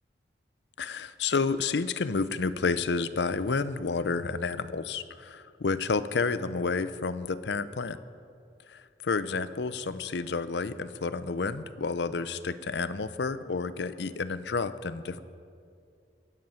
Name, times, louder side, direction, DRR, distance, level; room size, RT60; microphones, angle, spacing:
voice 1, 0.8-8.0 8.7-15.2, left 4 dB, 80° left, 14 dB, 0.6 m, -30 dB
16.5 x 10.5 x 5.7 m, 2.4 s
head